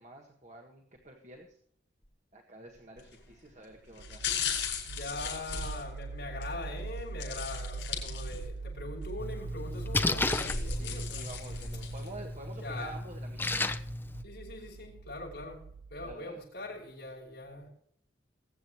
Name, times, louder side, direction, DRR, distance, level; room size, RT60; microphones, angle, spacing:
voice 1, 0.0-1.6 2.3-4.2 5.1-5.5 10.4-13.8 16.0-16.4, right 2 dB, 40° right, 1.7 m, -49 dB
sound 1, 3.0-3.3 3.9-6.5 7.2-8.6 9.0-9.1 9.9-12.1 12.6-12.7, left 7 dB, 90° left, 5.4 m, -37 dB
sound 2, 4.0-16.1, right 3 dB, 80° right, 0.5 m, -42 dB
voice 2, 4.8-11.2 12.6-12.9 14.2-15.6 15.9-17.7, left 2 dB, 70° left, 5.9 m, -42 dB
Splash splatter, 9.2-14.2, left 2 dB, 10° left, 0.5 m, -34 dB
21.5 x 8.9 x 3.1 m
head